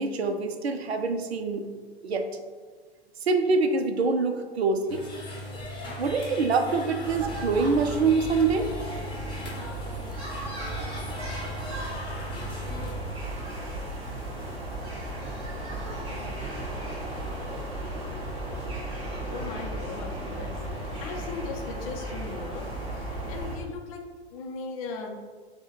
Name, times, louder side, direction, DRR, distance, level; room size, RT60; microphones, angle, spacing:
voice 1, 0.0-1.6 2.0-2.3 3.2-5.0 6.0-8.7, right 4 dB, 75° right, 6 dB, 0.6 m, -25 dB
sound 1, 4.9-12.9, equal, 15° left, 0.9 m, -38 dB
sound 2, 7.0-23.6, right 1 dB, 20° right, 1.1 m, -35 dB
voice 2, 19.3-25.2, left 4 dB, 35° left, 3 dB, 0.5 m, -38 dB
5.2 x 2.2 x 3.2 m, 1.5 s
figure-of-eight pair, 110°, 32 cm